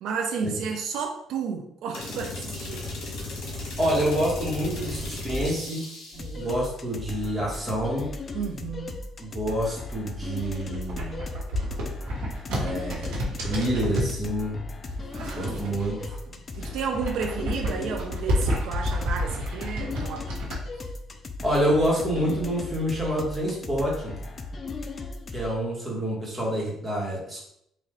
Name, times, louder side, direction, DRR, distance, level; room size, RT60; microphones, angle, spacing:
voice 1, 0.0-2.8 6.2-6.5 8.3-9.0 15.1-16.0 16.3-20.4, right 6 dB, 75° right, 2 dB, 0.4 m, -32 dB
sound 1, 1.9-6.4, left 2 dB, 70° left, 1.3 m, -35 dB
voice 2, 3.8-5.9 6.4-8.1 9.2-11.2 12.5-14.6 15.4-16.1 21.4-24.2 25.3-27.4, equal, 15° right, -4 dB, 1.4 m, -27 dB
sound 2, 6.1-25.6, left 3 dB, 30° left, 0.4 m, -37 dB
sound 3, 10.3-14.2 14.9-16.2 16.5-20.6, equal, 90° right, 1.3 m, -30 dB
3.9 x 2.5 x 3.2 m, 0.74 s
cardioid pair, 125°, 0 cm